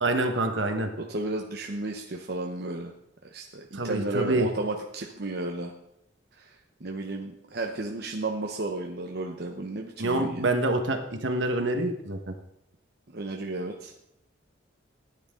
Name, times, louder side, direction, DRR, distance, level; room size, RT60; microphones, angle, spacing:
voice 1, 0.0-0.9 3.7-4.5 10.0-12.3, right 2 dB, 75° right, 5 dB, 1.4 m, -26 dB
voice 2, 1.0-2.9 3.3-5.7 6.4-6.5 6.8-10.4 13.1-13.9, right 2 dB, 55° right, 1 dB, 0.9 m, -33 dB
14.5 x 9.7 x 3.8 m, 0.80 s
head